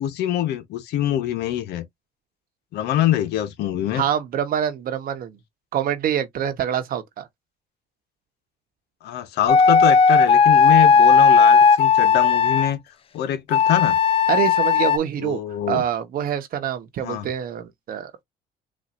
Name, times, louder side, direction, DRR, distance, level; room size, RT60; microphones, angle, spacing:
voice 1, 0.0-1.8 2.7-4.0 9.0-12.8 13.1-14.0 15.2-15.8 17.0-17.2, left 11 dB, 80° left, 1.1 m, -24 dB
voice 2, 3.9-5.4 5.7-7.3 14.3-15.4 15.7-18.2, right 9 dB, 60° right, 1.0 m, -25 dB
sound 1, 9.5-12.7 13.5-15.0, left 6 dB, 35° left, 0.4 m, -15 dB
4.2 x 2.7 x 2.5 m
cardioid pair, 110°, 17 cm